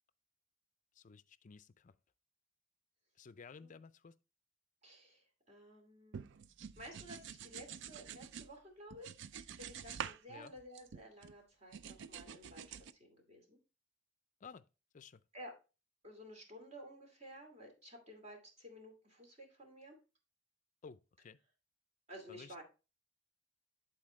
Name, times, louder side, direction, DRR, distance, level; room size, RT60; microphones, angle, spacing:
voice 1, 0.9-1.9 3.2-4.1 10.3-10.5 14.4-14.6 14.9-15.2 20.8-21.4 22.3-22.6, left 5 dB, 40° left, 0.4 m, -54 dB
voice 2, 4.8-6.3 6.8-9.2 9.6-12.6 13.0-13.6 15.3-15.5 16.0-20.0 22.1-22.6, equal, 35° right, 2.5 m, -53 dB
sound 1, 6.1-8.5 8.9-10.2 10.5-11.3 11.7-12.9, right 8 dB, 65° right, 0.4 m, -47 dB
11.0 x 4.5 x 3.1 m
head